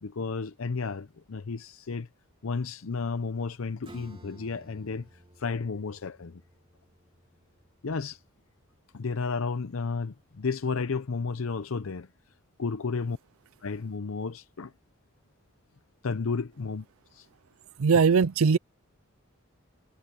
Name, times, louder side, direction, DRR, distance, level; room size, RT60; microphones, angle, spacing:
voice 1, 0.0-2.1 2.4-5.1 5.4-6.4 7.8-8.2 8.9-12.1 12.6-13.2 13.6-14.7 16.0-16.9 17.1-17.3, left 4 dB, 70° left, 0.7 m, -32 dB
Acoustic guitar / Strum, 3.8-9.1, right 1 dB, 25° right, 2.8 m, -55 dB
voice 2, 17.8-18.6, right 5 dB, 75° right, 0.5 m, -20 dB
head